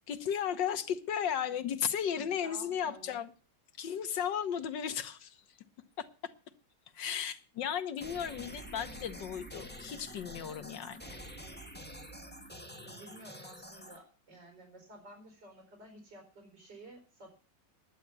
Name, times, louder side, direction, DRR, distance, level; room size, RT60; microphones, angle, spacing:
voice 1, 0.1-3.3 3.8-5.4 6.0-6.3 6.9-11.2, left 8 dB, 90° left, 1.8 m, -35 dB
voice 2, 1.5-1.9 2.1-3.2 12.8-17.3, right 1 dB, 75° right, 5.0 m, -53 dB
sound 1, 8.0-14.0, equal, 5° left, 1.6 m, -47 dB
11.5 x 8.6 x 8.1 m
omnidirectional pair, 1.9 m